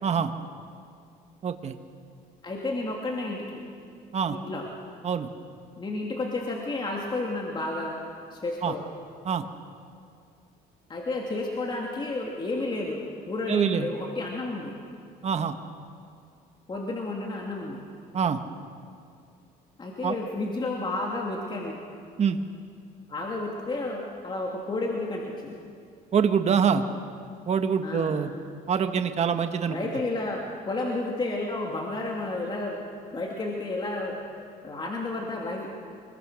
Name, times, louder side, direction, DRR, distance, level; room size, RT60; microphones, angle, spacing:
voice 1, 1.4-1.7 4.1-4.4 5.0-5.3 8.6-8.7 9.2-9.4 13.5-13.9 15.2-15.5 18.1-18.4 20.0-20.2 22.2-22.4 26.1-26.8 27.5-28.3 28.7-29.8, right 7 dB, 40° right, 7 dB, 1.4 m, -25 dB
voice 2, 2.4-3.6 4.3-4.7 5.8-8.0 8.3-8.8 10.9-14.7 16.7-17.8 19.8-21.8 23.1-25.5 27.8-28.2 29.7-34.2 34.6-35.7, left 2 dB, 30° left, -1 dB, 2.8 m, -31 dB
25.5 x 22.0 x 6.4 m, 2.3 s
cardioid pair, 110°, 17 cm